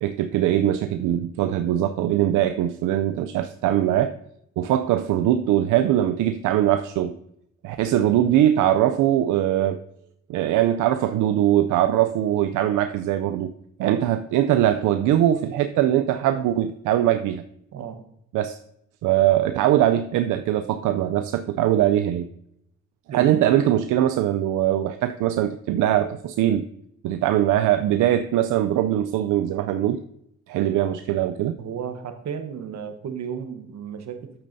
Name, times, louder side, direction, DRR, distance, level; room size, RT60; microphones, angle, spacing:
voice 1, 0.0-4.1 4.6-7.2 7.6-9.8 10.3-13.5 13.8-17.4 18.3-18.6 19.0-22.3 23.1-26.7 27.0-30.0 30.5-31.6, right 12 dB, 80° right, 9 dB, 0.5 m, -21 dB
voice 2, 17.7-18.0 23.1-23.4 31.6-34.3, right 7 dB, 65° right, 7 dB, 1.1 m, -33 dB
8.8 x 8.6 x 2.7 m, 0.74 s
cardioid pair, 90°, 30 cm